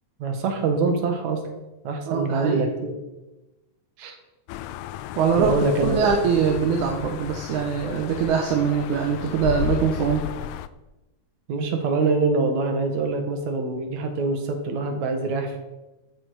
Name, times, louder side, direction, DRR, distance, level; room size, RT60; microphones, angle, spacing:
voice 1, 0.2-1.4 1.8-2.9 4.0-4.2 5.4-6.1 11.5-15.6, right 3 dB, 70° right, 5 dB, 2.8 m, -24 dB
voice 2, 2.1-2.6 5.2-5.5 5.8-10.2, right 7 dB, 85° right, 2 dB, 2.5 m, -23 dB
sound 1, 4.5-10.7, left 12 dB, 80° left, 1.9 m, -33 dB
13.5 x 8.6 x 4.9 m, 1.1 s
omnidirectional pair, 3.4 m